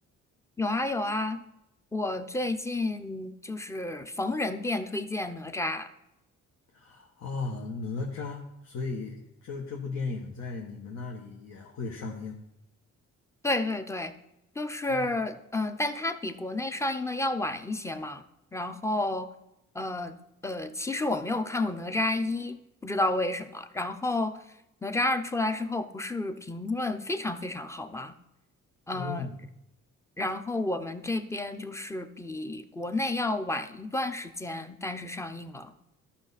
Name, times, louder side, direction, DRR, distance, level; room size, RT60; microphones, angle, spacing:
voice 1, 0.6-1.4 1.9-5.9 13.4-14.1 14.6-18.2 18.5-19.3 19.7-20.1 20.4-22.6 22.8-24.4 24.8-28.1 28.9-29.2 30.2-35.7, left 2 dB, 10° left, 9 dB, 0.7 m, -31 dB
voice 2, 6.7-12.4 14.9-15.1 28.9-29.4, left 4 dB, 60° left, -1 dB, 1.4 m, -36 dB
12.5 x 5.8 x 4.1 m, 0.86 s
cardioid pair, 90°, 30 cm